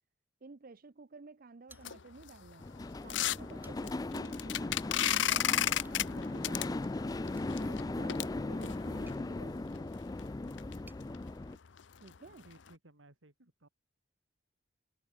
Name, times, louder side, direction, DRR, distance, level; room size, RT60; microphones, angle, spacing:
voice 1, 0.4-2.7 3.0-4.8 5.1-6.9 7.6-10.0 12.0-12.5, right 3 dB, 50° right, 0.6 m, -53 dB
sound 1, 1.7-9.2 9.8-9.9 10.2-10.3 10.6-10.7 11.0-11.2 11.6-11.8 12.1-12.2 12.7-12.8, left 11 dB, 70° left, 0.6 m, -34 dB
sound 2, 1.7-2.4 2.8-2.9 3.4-4.1 5.8-6.0 7.3-11.1, right 3 dB, 10° right, 1.8 m, -64 dB
sound 3, 2.6-11.6, left 2 dB, 20° left, 0.4 m, -38 dB
voice 2, 12.3-13.7, right 1 dB, 85° right, 2.6 m, -60 dB
head